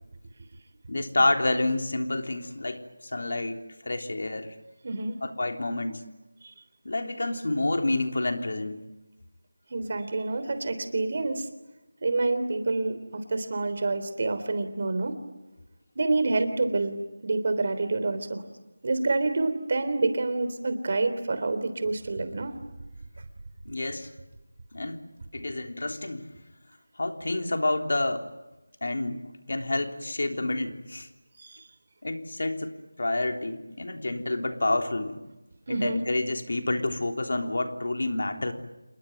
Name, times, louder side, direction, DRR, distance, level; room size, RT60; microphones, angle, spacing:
voice 1, 0.9-4.5 5.2-6.0 6.8-8.8 23.6-24.1 24.7-25.0 25.3-26.3 27.0-28.3 28.8-31.1 32.0-35.2 35.7-38.5, left 2 dB, 65° left, 4 dB, 3.5 m, -29 dB
voice 2, 4.8-5.1 9.7-11.5 12.0-15.1 15.9-17.0 17.2-18.4 18.8-22.6 31.4-31.6 35.7-36.0, right 3 dB, 40° right, 10 dB, 3.4 m, -27 dB
28.5 x 21.0 x 9.3 m, 1.0 s
figure-of-eight pair, 170°, 0 cm